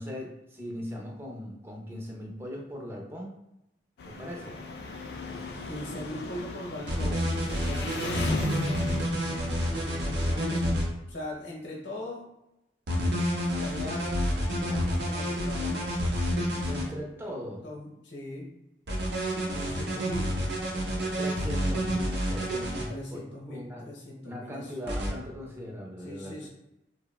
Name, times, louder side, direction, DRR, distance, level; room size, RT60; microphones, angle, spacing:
voice 1, 0.0-3.4 4.1-4.6 13.8-14.0 16.7-17.7 21.2-23.9 24.2-26.5, equal, 15° right, 0 dB, 0.4 m, -39 dB
Engine, 4.0-10.5, left 2 dB, 60° left, 0.3 m, -36 dB
voice 2, 5.6-9.1 9.8-12.3 13.6-15.8 17.6-18.5 19.5-20.4 22.9-24.7 26.0-26.5, left 1 dB, 80° left, -2 dB, 0.8 m, -40 dB
sound 1, 6.9-10.8 12.9-16.8 18.9-22.8 24.9-25.1, equal, 70° right, 0.6 m, -29 dB
2.9 x 2.0 x 2.3 m, 0.87 s
head